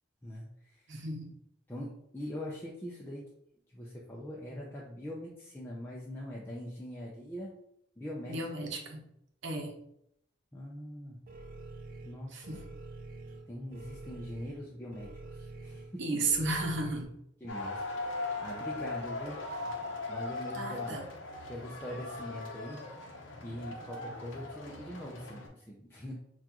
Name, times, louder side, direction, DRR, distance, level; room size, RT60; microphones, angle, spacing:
voice 1, 0.2-0.8 1.7-3.3 3.7-7.5 8.0-8.7 10.5-11.2 12.0-12.6 13.5-16.2 17.4-19.6 20.1-21.0 21.5-22.8 23.4-26.1, equal, 10° left, -5 dB, 0.5 m, -42 dB
voice 2, 0.9-1.3 8.3-9.0 9.4-9.7 12.3-12.6 16.0-17.1 20.5-21.1, right 2 dB, 75° right, 1 dB, 0.8 m, -33 dB
sound 1, 11.3-17.0, right 2 dB, 45° right, 0.5 m, -47 dB
sound 2, 17.5-25.5, left 3 dB, 85° left, 0.8 m, -39 dB
5.7 x 2.4 x 2.9 m, 0.76 s
head